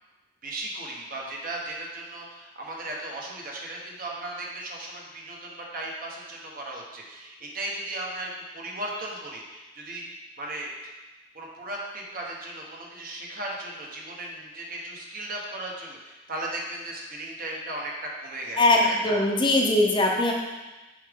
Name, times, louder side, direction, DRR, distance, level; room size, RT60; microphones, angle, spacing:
voice 1, 0.4-10.7 11.3-19.2, right 1 dB, 50° right, -2 dB, 1.2 m, -36 dB
voice 2, 18.6-20.3, left 2 dB, 25° left, 0 dB, 0.7 m, -21 dB
7.4 x 4.8 x 3.6 m, 1.1 s
head